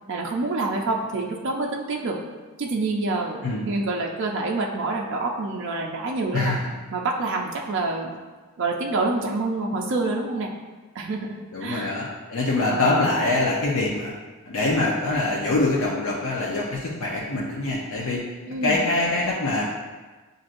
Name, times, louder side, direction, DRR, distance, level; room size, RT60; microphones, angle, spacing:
voice 1, 0.1-2.2 2.6-6.6 6.9-8.2 8.6-10.5 10.9-12.1 12.6-13.1 18.5-18.9, right 3 dB, 55° right, 0 dB, 0.4 m, -27 dB
voice 2, 11.5-14.1 14.4-18.2 18.6-19.6, left 2 dB, 65° left, -5 dB, 0.7 m, -24 dB
7.3 x 2.6 x 2.5 m, 1.3 s
head